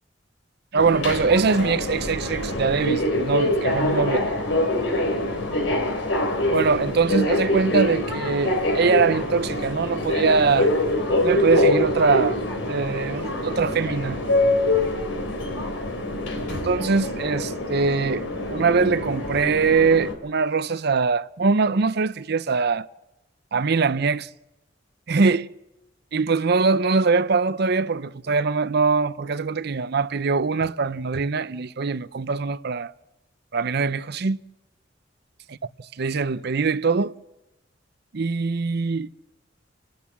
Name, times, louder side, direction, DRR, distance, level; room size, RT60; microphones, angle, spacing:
voice 1, 0.7-4.2 6.5-10.7 11.2-12.4 12.7-14.2 16.5-18.2 18.5-22.9 23.5-24.3 25.1-25.5 26.1-32.9 33.5-34.4 36.0-37.1 38.1-39.1, right 4 dB, 60° right, 0.6 m, -22 dB
Subway metro underground, 0.8-20.1, left 1 dB, 80° left, 4.0 m, -25 dB
30.0 x 13.0 x 7.4 m
head